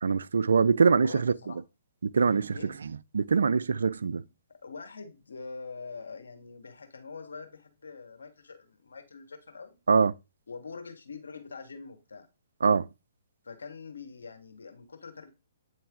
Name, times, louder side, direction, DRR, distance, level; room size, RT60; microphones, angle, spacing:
voice 1, 0.0-1.3 2.1-4.2 9.9-10.1 12.6-12.9, right 5 dB, 75° right, 0.3 m, -24 dB
voice 2, 0.9-1.6 2.5-2.7 4.5-9.8 10.5-12.3 13.4-15.3, left 4 dB, 80° left, 1.5 m, -44 dB
8.6 x 3.2 x 3.6 m
hypercardioid pair, 135°, 0 cm